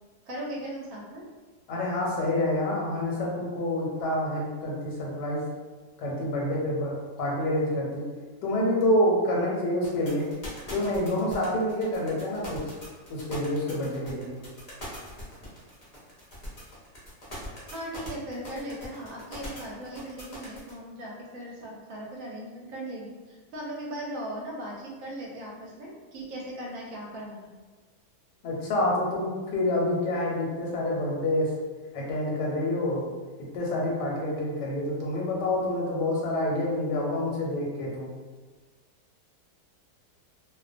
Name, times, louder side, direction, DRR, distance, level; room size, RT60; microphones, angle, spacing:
voice 1, 0.3-1.2 17.6-27.5, right 1 dB, 65° right, -3 dB, 0.9 m, -38 dB
voice 2, 1.7-5.5 6.0-8.0 8.4-10.3 10.7-12.8 13.1-14.3 28.4-31.5 31.9-33.0 33.5-38.1, left 1 dB, 90° left, -3 dB, 1.3 m, -27 dB
sound 1, 9.8-20.7, equal, 50° left, 0.4 m, -41 dB
2.7 x 2.1 x 2.4 m, 1.3 s
omnidirectional pair, 1.8 m